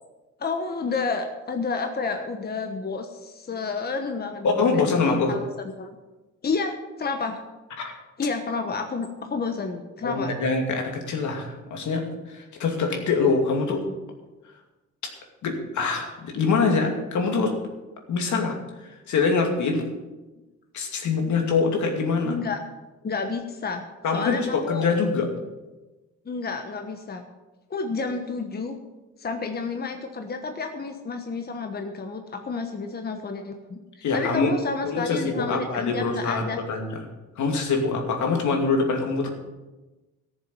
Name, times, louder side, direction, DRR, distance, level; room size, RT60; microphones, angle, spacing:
voice 1, 0.4-5.4 5.8-5.9 6.4-7.4 8.2-10.3 10.6-10.8 22.2-22.6 23.0-23.8 24.1-24.9 26.2-27.2 27.7-28.8 29.2-36.6, left 4 dB, 30° left, 5 dB, 1.2 m, -30 dB
voice 2, 4.4-5.3 7.8-7.9 10.0-13.8 15.4-17.5 18.1-18.6 18.8-19.8 20.7-22.3 24.0-25.3 34.0-34.5 34.8-36.4 36.7-37.0 37.4-39.3, left 4 dB, 75° left, 2 dB, 2.6 m, -24 dB
14.0 x 7.3 x 7.0 m, 1.1 s
cardioid pair, 90°, 30 cm